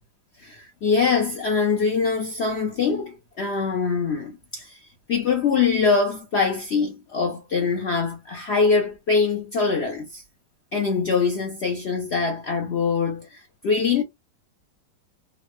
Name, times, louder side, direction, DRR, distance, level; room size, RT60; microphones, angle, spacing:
voice 1, 0.4-4.8 5.1-10.2 10.7-14.0, left 5 dB, 90° left, 0.5 m, -23 dB
3.8 x 2.0 x 2.9 m
omnidirectional pair, 1.9 m